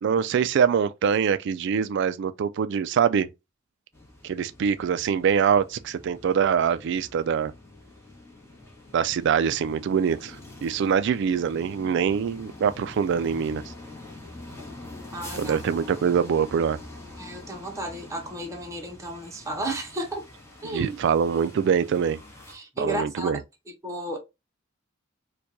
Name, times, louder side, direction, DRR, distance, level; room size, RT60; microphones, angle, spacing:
voice 1, 0.0-3.3 4.2-7.5 8.9-10.4 10.6-13.6 15.4-16.8 20.7-22.2 22.8-23.4, right 7 dB, 60° right, 0.3 m, -24 dB
sound 1, 3.9-22.5, left 2 dB, 15° left, 1.2 m, -45 dB
voice 2, 15.1-15.6 17.2-20.2 20.6-21.0 22.5-23.4 23.7-24.2, right 1 dB, 15° right, 0.8 m, -33 dB
4.4 x 2.3 x 2.6 m
head